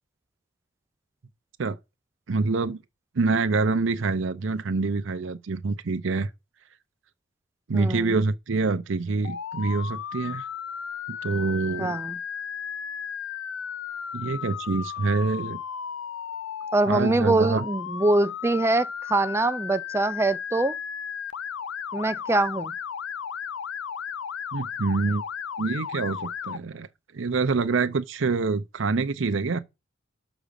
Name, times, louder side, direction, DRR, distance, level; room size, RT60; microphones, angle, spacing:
voice 1, 2.3-2.8 3.2-6.3 7.7-10.5 11.1-12.0 14.1-15.6 16.9-17.6 24.5-25.2 25.6-26.9 27.1-29.6, right 4 dB, 60° right, 0.6 m, -26 dB
voice 2, 7.7-8.2 11.8-12.2 16.7-20.8 21.9-22.7, right 2 dB, 10° right, 0.3 m, -24 dB
Motor vehicle (road) / Siren, 9.2-26.6, left 7 dB, 65° left, 0.4 m, -35 dB
6.0 x 5.0 x 6.8 m
head